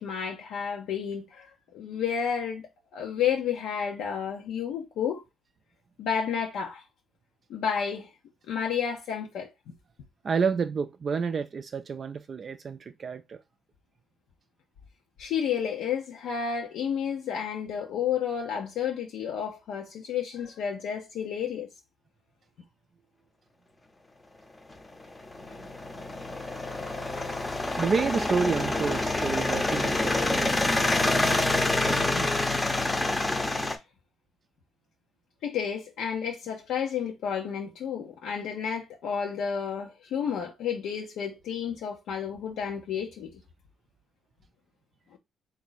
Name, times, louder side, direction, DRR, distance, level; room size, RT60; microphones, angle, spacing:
voice 1, 0.0-1.5 1.7-5.2 6.0-6.8 7.5-8.1 8.5-9.5 15.2-21.7 33.6-33.7 35.4-43.3 45.1-45.2, left 7 dB, 80° left, 0.8 m, -31 dB
voice 2, 10.2-13.4 27.8-31.3 31.8-32.3, right 5 dB, 40° right, 0.3 m, -30 dB
sound 1, 24.7-33.8, left 2 dB, 15° left, 0.7 m, -27 dB
3.6 x 2.6 x 4.0 m
cardioid pair, 115°, 0 cm